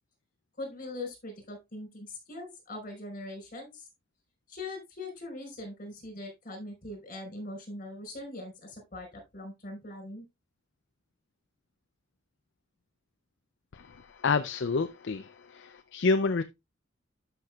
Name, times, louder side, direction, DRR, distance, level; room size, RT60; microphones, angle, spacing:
voice 1, 0.6-3.9 4.5-10.2, left 2 dB, 45° left, 5.0 m, -41 dB
voice 2, 13.7-16.4, left 4 dB, 65° left, 0.5 m, -29 dB
12.0 x 6.0 x 2.4 m
head